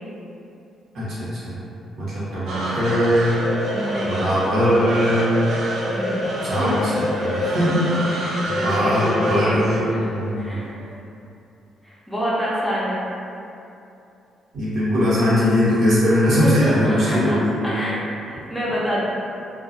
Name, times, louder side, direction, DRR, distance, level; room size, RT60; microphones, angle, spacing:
voice 1, 0.9-1.6 2.0-3.4 4.0-5.3 6.4-7.7 8.4-10.4 14.5-17.7, equal, 65° right, -10 dB, 0.9 m, -20 dB
sound 1, 2.5-10.9, equal, 80° right, 0.4 m, -27 dB
voice 2, 3.7-4.4 5.9-7.6 8.1-9.8 10.4-10.7 11.8-13.0 16.4-17.4 17.6-19.0, equal, 10° left, -8 dB, 0.6 m, -27 dB
2.2 x 2.2 x 2.6 m, 2.7 s
cardioid pair, 90°, 0 cm